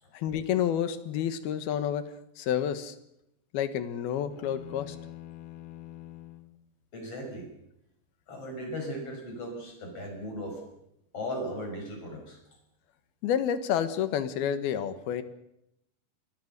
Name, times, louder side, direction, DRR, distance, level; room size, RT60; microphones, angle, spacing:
voice 1, 0.1-2.1 2.4-2.9 3.5-5.0 13.2-15.2, left 9 dB, 85° left, 12 dB, 3.3 m, -29 dB
sound 1, 4.3-6.6, left 13 dB, 70° left, 2.3 m, -45 dB
voice 2, 6.9-7.5 8.3-10.7 11.1-12.4, equal, 40° left, 3 dB, 6.5 m, -37 dB
26.0 x 20.5 x 6.7 m, 0.80 s
omnidirectional pair, 4.3 m